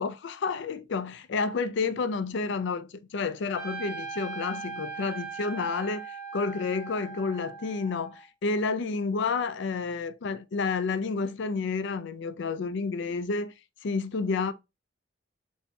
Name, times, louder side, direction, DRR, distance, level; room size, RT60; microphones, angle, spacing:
voice 1, 0.0-13.5 13.8-14.5, left 4 dB, 65° left, 0.4 m, -30 dB
Trumpet, 3.5-8.2, right 5 dB, 10° right, 1.2 m, -39 dB
6.7 x 2.7 x 2.2 m
head